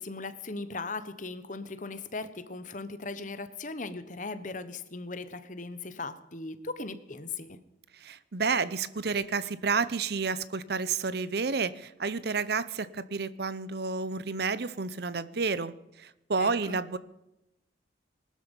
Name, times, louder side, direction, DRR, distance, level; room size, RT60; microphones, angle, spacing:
voice 1, 0.0-7.6 16.4-16.8, left 3 dB, 40° left, 12 dB, 1.1 m, -38 dB
voice 2, 7.9-17.0, right 4 dB, 55° right, 16 dB, 0.7 m, -30 dB
20.5 x 12.5 x 5.4 m, 0.93 s
head